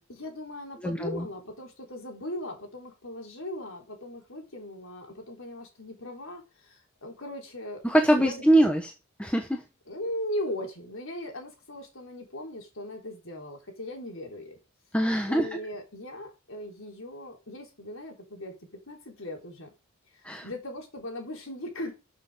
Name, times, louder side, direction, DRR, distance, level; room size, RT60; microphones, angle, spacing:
voice 1, 0.1-7.8 8.2-8.4 9.9-14.6 15.3-18.5 18.9-19.7 20.4-21.9, left 1 dB, 65° left, 4.2 m, -38 dB
voice 2, 0.8-1.3 7.8-8.9 9.2-9.6 14.9-15.5 20.2-20.5, right 1 dB, 5° left, 1.1 m, -23 dB
12.5 x 6.8 x 5.1 m
head